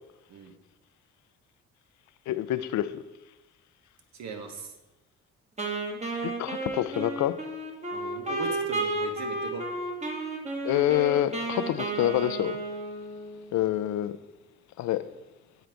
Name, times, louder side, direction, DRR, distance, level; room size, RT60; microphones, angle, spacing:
voice 1, 2.3-3.0 6.2-7.4 10.6-12.6 13.5-14.1 14.8-15.0, left 13 dB, 70° left, 0.4 m, -27 dB
voice 2, 4.1-4.7 7.9-9.7, right 5 dB, 65° right, 1.1 m, -39 dB
Wind instrument woodwind instrument, 5.6-13.5, right 2 dB, 20° right, 1.3 m, -32 dB
8.1 x 3.8 x 4.4 m
cardioid pair, 90°, 30 cm